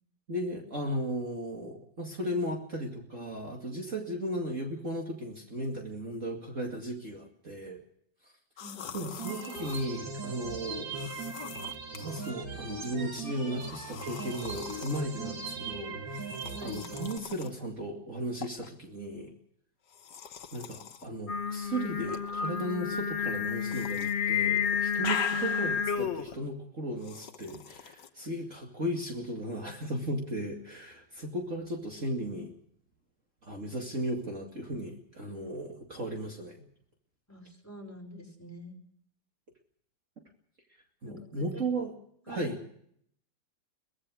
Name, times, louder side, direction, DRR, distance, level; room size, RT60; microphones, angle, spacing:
voice 1, 0.3-7.8 8.9-11.0 12.0-16.0 16.6-19.3 20.5-32.5 33.4-36.6 41.0-41.9 42.3-42.6, right 1 dB, 40° right, 1 dB, 2.8 m, -36 dB
sound 1, 8.6-9.9 10.9-12.3 13.6-15.1 16.1-17.6 18.4-18.7 19.9-21.1 22.0-22.7 23.6-24.1 24.5-25.9 27.0-28.1, left 7 dB, 65° left, 1.7 m, -42 dB
voice 2, 8.6-9.2 16.5-16.8 37.3-38.8 41.0-41.6 42.3-42.5, equal, 10° left, 3 dB, 5.0 m, -46 dB
sound 2, 9.2-17.2, right 3 dB, 80° right, 3.1 m, -39 dB
Singing, 21.3-26.3, left 7 dB, 40° left, 1.3 m, -30 dB
23.5 x 17.5 x 6.4 m, 0.67 s
omnidirectional pair, 2.0 m